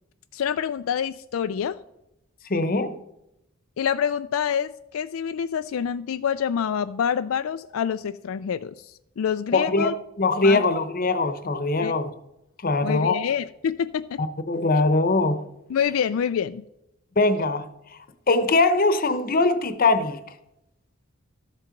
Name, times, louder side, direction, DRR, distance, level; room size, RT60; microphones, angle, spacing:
voice 1, 0.3-1.8 3.8-9.9 10.4-10.6 11.8-11.9 12.8-14.2 15.7-16.6, left 8 dB, 80° left, 0.4 m, -26 dB
voice 2, 2.5-3.0 9.5-12.1 12.6-13.2 14.2-15.4 17.2-17.7 18.3-20.2, left 3 dB, 45° left, 0.9 m, -22 dB
13.0 x 7.4 x 5.2 m
head